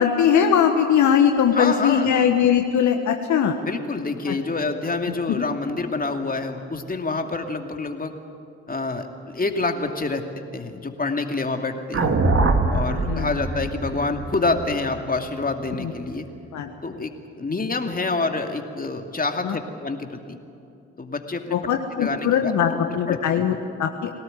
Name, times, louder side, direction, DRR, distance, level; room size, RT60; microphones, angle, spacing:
voice 1, 0.0-3.6 4.3-4.4 5.4-5.5 13.1-13.3 15.8-15.9 16.5-16.7 19.4-19.6 21.5-23.5 23.8-24.1, left 8 dB, 60° left, 5 dB, 1.4 m, -20 dB
voice 2, 1.5-2.1 3.6-8.1 8.7-10.2 10.5-12.2 12.7-16.3 16.8-17.1 17.4-20.4 21.0-21.6 22.0-23.6, left 3 dB, 25° left, 5 dB, 2.6 m, -27 dB
sound 1, 11.9-16.2, right 3 dB, 40° right, 2.4 m, -24 dB
22.0 x 18.0 x 9.1 m, 2.6 s
hypercardioid pair, 45°, 33 cm